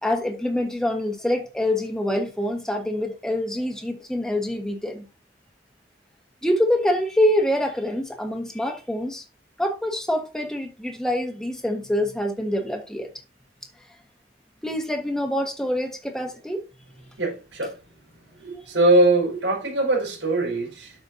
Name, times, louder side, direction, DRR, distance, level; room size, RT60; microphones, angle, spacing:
voice 1, 0.0-5.0 6.4-9.2 9.6-13.1 14.6-16.6, left 1 dB, 5° left, 1.3 m, -25 dB
voice 2, 17.2-17.7 18.4-20.9, right 2 dB, 85° right, 5.2 m, -21 dB
12.5 x 5.4 x 2.7 m
head